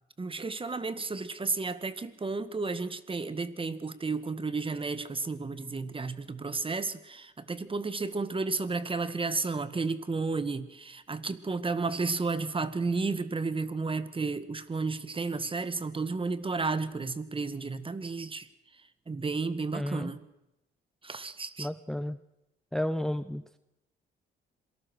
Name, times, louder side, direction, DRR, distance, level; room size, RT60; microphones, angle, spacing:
voice 1, 0.2-18.5 19.1-20.2 21.0-21.7, right 4 dB, 25° right, 13 dB, 1.9 m, -32 dB
voice 2, 19.7-20.1 21.6-22.2 22.7-23.6, left 1 dB, ahead, 13 dB, 0.8 m, -32 dB
26.5 x 18.5 x 6.4 m, 0.91 s
cardioid pair, 90°, 20 cm